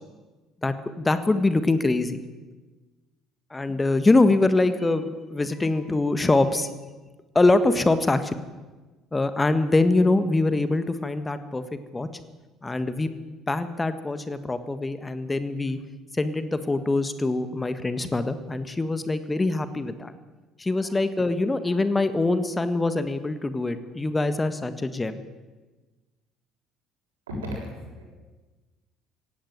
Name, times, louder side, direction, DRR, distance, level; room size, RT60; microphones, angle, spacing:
voice 1, 0.6-2.2 3.5-5.0 5.3-6.7 7.3-8.3 9.1-11.6 11.9-12.1 12.6-13.1 13.5-15.8 16.1-20.1 20.6-25.2, left 2 dB, 20° left, 12 dB, 1.5 m, -23 dB
voice 2, 27.3-28.0, equal, 80° right, -1 dB, 7.3 m, -35 dB
17.0 x 16.5 x 9.5 m, 1.2 s
figure-of-eight pair, 55°, 0 cm